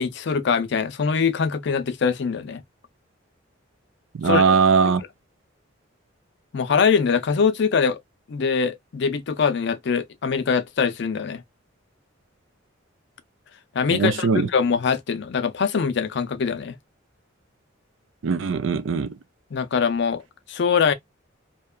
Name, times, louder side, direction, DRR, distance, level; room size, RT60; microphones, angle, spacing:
voice 1, 0.0-2.6 4.2-4.4 6.5-8.0 8.3-11.4 13.7-16.8 19.5-20.2 20.5-20.9, left 6 dB, 60° left, 0.4 m, -23 dB
voice 2, 4.1-5.0 13.9-14.5 18.2-19.1, right 5 dB, 70° right, 0.4 m, -20 dB
2.8 x 2.2 x 2.2 m
head